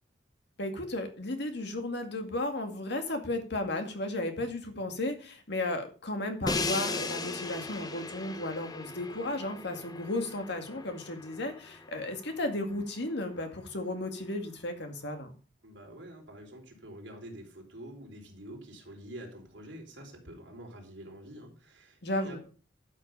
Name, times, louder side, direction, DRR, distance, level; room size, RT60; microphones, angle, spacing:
voice 1, 0.6-15.3 22.0-22.4, left 1 dB, 65° left, 5 dB, 2.1 m, -34 dB
Crash cymbal, 6.5-12.4, left 3 dB, 20° left, 0.8 m, -37 dB
voice 2, 15.6-22.4, right 1 dB, 70° right, 0 dB, 4.0 m, -47 dB
12.0 x 6.3 x 5.5 m, 0.37 s
head